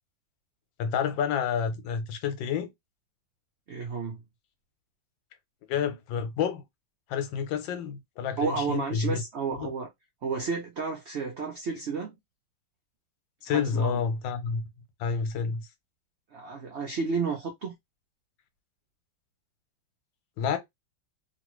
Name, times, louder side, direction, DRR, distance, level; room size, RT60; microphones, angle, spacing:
voice 1, 0.8-2.7 5.7-6.6 7.1-9.2 9.6-9.7 13.4-14.6 15.0-15.7 20.4-20.6, left 6 dB, 80° left, 1.4 m, -29 dB
voice 2, 3.7-4.2 8.4-9.9 10.2-12.1 13.5-14.0 16.3-17.7, right 4 dB, 90° right, 0.5 m, -31 dB
2.9 x 2.6 x 3.0 m
omnidirectional pair, 2.0 m